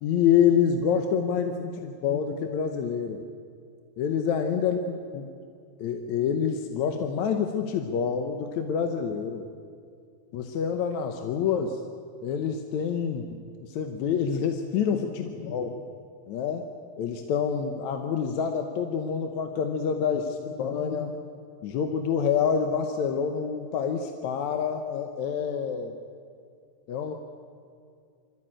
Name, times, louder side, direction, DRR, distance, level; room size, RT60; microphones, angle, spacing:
voice 1, 0.0-3.2 4.0-5.3 5.8-9.5 10.3-11.8 12.2-15.8 16.3-16.7 17.0-21.2 21.6-26.0 26.9-27.1, left 7 dB, 75° left, 5 dB, 2.3 m, -27 dB
25.0 x 14.0 x 8.9 m, 2.3 s
omnidirectional pair, 3.4 m